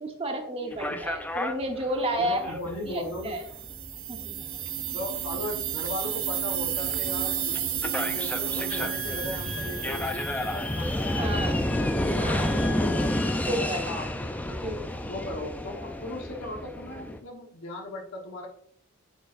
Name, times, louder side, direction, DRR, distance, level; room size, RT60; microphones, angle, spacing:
voice 1, 0.0-3.4 4.1-4.4 11.1-11.6 12.2-12.5 13.5-13.9 14.5-14.8, right 1 dB, 25° right, 3 dB, 1.0 m, -31 dB
voice 2, 0.6-1.0 2.2-3.4 4.9-11.6 11.9-14.6 15.1-18.5, left 1 dB, 65° left, 1 dB, 1.1 m, -38 dB
sound 1, 0.7-17.2, left 1 dB, 5° left, 0.4 m, -31 dB
sound 2, 3.1-11.0, right 9 dB, 65° right, 0.9 m, -32 dB
Wind instrument woodwind instrument, 8.7-13.4, left 3 dB, 30° left, 1.9 m, -41 dB
10.0 x 4.6 x 2.5 m, 0.67 s
head